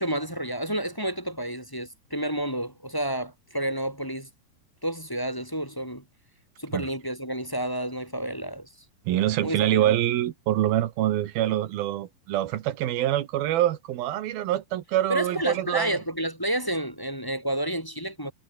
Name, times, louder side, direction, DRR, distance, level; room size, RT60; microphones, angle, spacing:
voice 1, 0.0-4.3 4.8-6.0 6.6-8.7 9.4-10.0 15.1-18.3, right 1 dB, 5° left, 3.9 m, -30 dB
voice 2, 9.1-16.0, right 13 dB, 85° right, 3.2 m, -25 dB
omnidirectional pair, 4.2 m